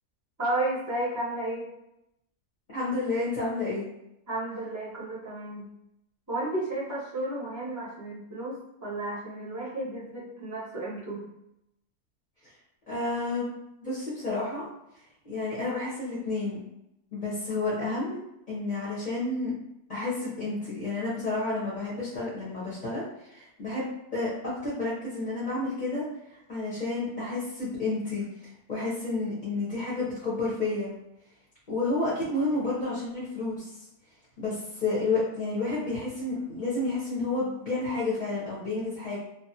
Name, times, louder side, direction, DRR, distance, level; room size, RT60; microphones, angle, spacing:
voice 1, 0.4-1.7 4.3-5.7 6.3-11.2, right 1 dB, 20° right, -7 dB, 0.5 m, -32 dB
voice 2, 2.7-3.8 12.9-13.5 13.8-14.7 15.2-16.6 17.1-19.5 19.9-23.9 24.1-26.1 26.5-28.2 28.7-30.9 31.7-33.7 34.4-39.2, left 2 dB, 40° left, -8 dB, 0.7 m, -30 dB
2.4 x 2.3 x 2.7 m, 0.84 s
omnidirectional pair, 1.6 m